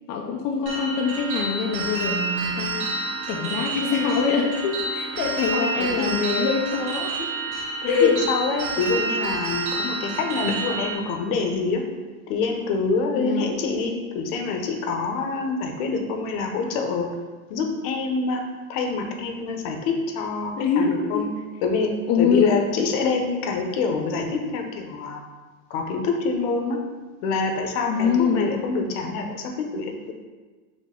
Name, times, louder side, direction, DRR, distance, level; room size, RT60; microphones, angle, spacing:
voice 1, 0.1-2.9 3.3-7.3 7.9-8.1 13.1-13.5 20.6-21.3 22.1-22.5 27.9-28.5, left 6 dB, 40° left, 0 dB, 0.5 m, -24 dB
sound 1, 0.7-10.9, right 3 dB, 55° right, 1.2 m, -29 dB
voice 2, 5.5-6.2 7.8-11.8 12.3-17.1 17.5-18.4 18.7-21.3 21.6-21.9 22.2-25.2 25.7-26.8 27.2-30.1, left 4 dB, 65° left, 3 dB, 0.9 m, -26 dB
4.1 x 3.5 x 3.7 m, 1.3 s
supercardioid pair, 120°, 44 cm